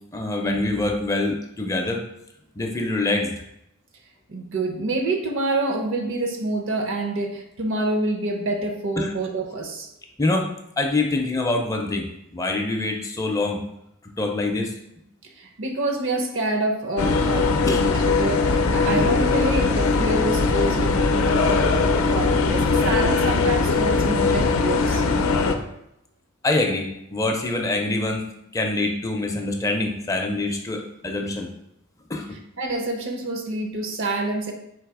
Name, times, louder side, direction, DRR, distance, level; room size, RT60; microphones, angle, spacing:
voice 1, 0.1-2.1 2.6-3.3 9.0-9.1 10.2-13.6 14.2-14.7 17.7-17.8 26.4-31.5 32.1-32.3, left 2 dB, 15° left, 2 dB, 0.4 m, -25 dB
voice 2, 4.3-9.9 15.2-21.6 22.0-25.0 32.6-34.5, right 2 dB, 65° right, 3 dB, 0.7 m, -27 dB
sound 1, 17.0-25.5, left 4 dB, 80° left, 0.4 m, -20 dB
4.0 x 2.7 x 4.7 m, 0.80 s
head